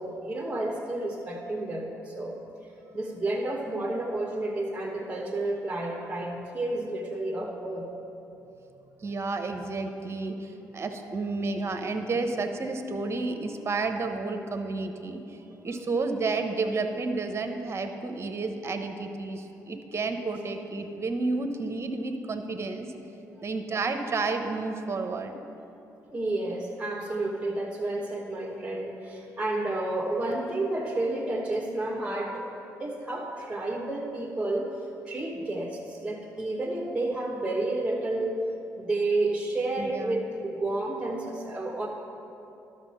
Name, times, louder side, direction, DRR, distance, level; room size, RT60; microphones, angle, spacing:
voice 1, 0.0-2.4 2.9-7.9 15.5-15.6 26.1-32.4 32.8-38.4 38.8-41.9, right 2 dB, 15° right, -4 dB, 1.3 m, -31 dB
voice 2, 9.0-22.9 23.4-25.4 39.8-40.2, right 3 dB, 35° right, 6 dB, 1.0 m, -31 dB
11.5 x 6.4 x 5.6 m, 2.9 s
hypercardioid pair, 55°, 7 cm